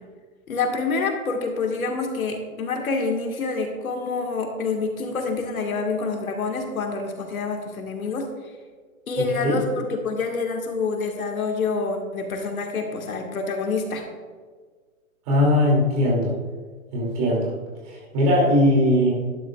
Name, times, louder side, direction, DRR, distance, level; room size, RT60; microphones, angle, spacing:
voice 1, 0.5-8.3 9.1-14.0, left 4 dB, 80° left, 3 dB, 1.8 m, -27 dB
voice 2, 15.3-16.3 16.9-17.5 17.9-19.1, left 1 dB, 25° right, -4 dB, 2.6 m, -19 dB
11.5 x 9.9 x 2.4 m, 1.5 s
hypercardioid pair, 165°, 42 cm